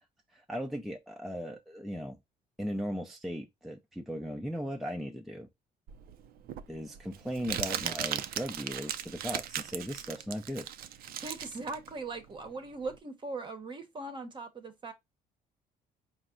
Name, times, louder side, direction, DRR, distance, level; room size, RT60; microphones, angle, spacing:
voice 1, 0.3-2.2 2.6-5.5 6.7-10.7, equal, ahead, 0.5 m, -37 dB
Crumpling crinkling, 5.9-13.0, right 10 dB, 60° right, 0.5 m, -37 dB
voice 2, 11.2-14.9, right 3 dB, 30° right, 0.9 m, -40 dB
4.6 x 2.1 x 3.7 m
cardioid pair, 110°, 17 cm